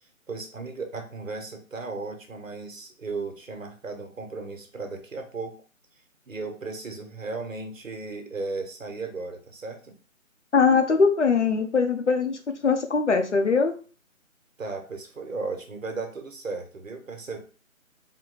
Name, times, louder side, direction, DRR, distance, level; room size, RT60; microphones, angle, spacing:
voice 1, 0.3-5.6 6.3-10.0 14.6-17.4, right 3 dB, 70° right, 4 dB, 1.3 m, -35 dB
voice 2, 10.5-13.7, left 5 dB, 55° left, 6 dB, 0.8 m, -21 dB
4.2 x 2.2 x 4.0 m, 0.37 s
figure-of-eight pair, 175°, 42 cm